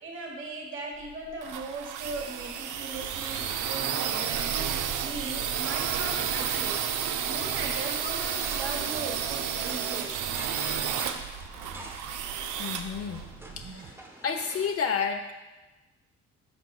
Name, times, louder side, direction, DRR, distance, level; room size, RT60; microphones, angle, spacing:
voice 1, 0.0-4.6 5.0-6.8 7.3-10.2, right 2 dB, 40° right, 0 dB, 1.3 m, -38 dB
sound 1, 1.0-13.8, right 8 dB, 80° right, 0.5 m, -31 dB
sound 2, 2.9-4.2 4.6-6.9 7.4-9.7 10.2-12.4 12.9-14.0, right 5 dB, 65° right, 0.9 m, -48 dB
sound 3, 6.0-14.7, right 1 dB, 10° right, 0.8 m, -45 dB
voice 2, 12.6-13.3 13.6-14.0 14.2-15.3, left 6 dB, 50° left, 3 dB, 0.6 m, -30 dB
12.5 x 4.4 x 2.4 m, 1.1 s
cardioid pair, 90°, 30 cm